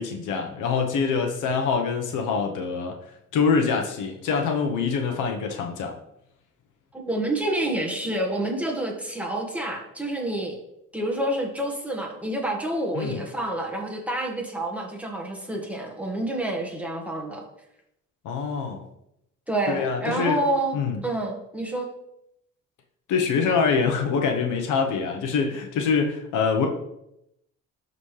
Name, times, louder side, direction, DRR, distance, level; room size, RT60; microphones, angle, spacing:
voice 1, 0.0-2.9 3.3-5.9 12.9-13.2 18.2-18.9 19.7-20.4 20.7-21.0 23.1-26.7, left 5 dB, 85° left, 3 dB, 1.1 m, -25 dB
voice 2, 6.9-10.6 10.9-17.4 19.5-20.8 21.0-21.9, right 1 dB, 5° right, 0 dB, 1.7 m, -28 dB
12.5 x 4.1 x 3.3 m, 0.81 s
cardioid pair, 90°, 30 cm